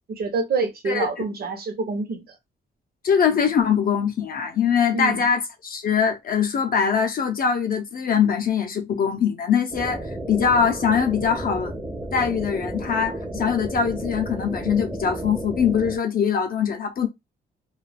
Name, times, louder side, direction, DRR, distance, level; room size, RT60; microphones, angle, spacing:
voice 1, 0.1-2.3 4.9-5.3, right 4 dB, 55° right, 0.7 m, -27 dB
voice 2, 3.0-11.7 12.1-17.1, left 7 dB, 50° left, 0.5 m, -22 dB
sound 1, 9.7-16.0, right 1 dB, 5° right, 0.5 m, -32 dB
2.3 x 2.2 x 3.2 m
cardioid pair, 140°, 19 cm